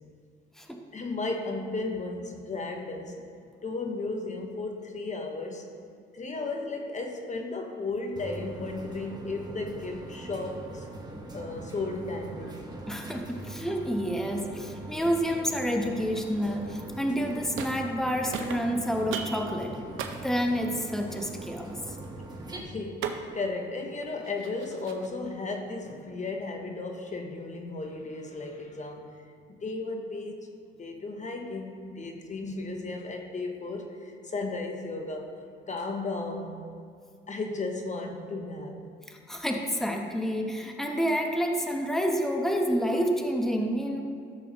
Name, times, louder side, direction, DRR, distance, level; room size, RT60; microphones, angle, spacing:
voice 1, 0.9-3.2 3.6-5.7 6.1-10.9 11.3-12.7 22.5-29.1 29.5-30.5 30.8-35.4 35.7-36.6 37.3-38.8, left 3 dB, 35° left, 3 dB, 0.9 m, -35 dB
sound 1, 8.2-22.6, right 2 dB, 20° right, 1.3 m, -42 dB
voice 2, 12.9-19.7 20.2-22.0 39.1-44.0, equal, ahead, 1 dB, 1.0 m, -29 dB
sound 2, 17.2-18.1 18.3-25.3, right 6 dB, 85° right, 0.7 m, -40 dB
14.0 x 6.9 x 3.0 m, 2.3 s
cardioid pair, 90°, 20 cm